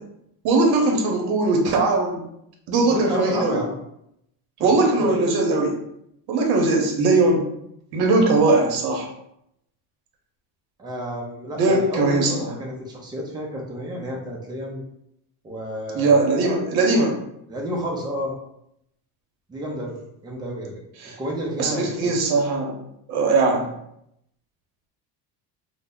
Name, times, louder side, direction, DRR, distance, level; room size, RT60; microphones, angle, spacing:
voice 1, 0.4-2.2 2.7-3.6 4.6-5.7 6.3-7.4 7.9-9.1 11.6-12.5 15.9-17.1 21.0-21.2 21.6-22.7 23.1-23.7, right 3 dB, 60° right, 1 dB, 0.9 m, -20 dB
voice 2, 2.9-3.7 4.6-4.7 5.0-5.4 6.5-6.6 10.8-14.8 15.4-16.3 17.5-18.4 19.5-20.8 21.2-22.1, equal, 10° right, -1 dB, 0.4 m, -30 dB
2.7 x 2.0 x 3.6 m, 0.78 s
cardioid pair, 155°, 42 cm